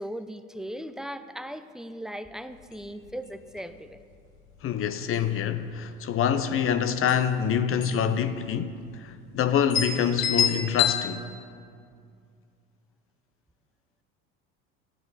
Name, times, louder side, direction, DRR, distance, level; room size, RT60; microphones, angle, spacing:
voice 1, 0.0-4.0, equal, ahead, 0.5 m, -38 dB
sound 1, 2.6-2.7 3.0-3.1 3.6-3.9 4.5-4.7 5.0-5.7 6.7-6.8 7.1-7.2 7.8-8.1 8.4-8.5 9.2-9.3 9.7-11.0, left 8 dB, 60° left, 1.3 m, -27 dB
voice 2, 4.6-11.3, left 8 dB, 40° left, 0.7 m, -26 dB
15.0 x 10.5 x 4.1 m
hypercardioid pair, 80°, 33 cm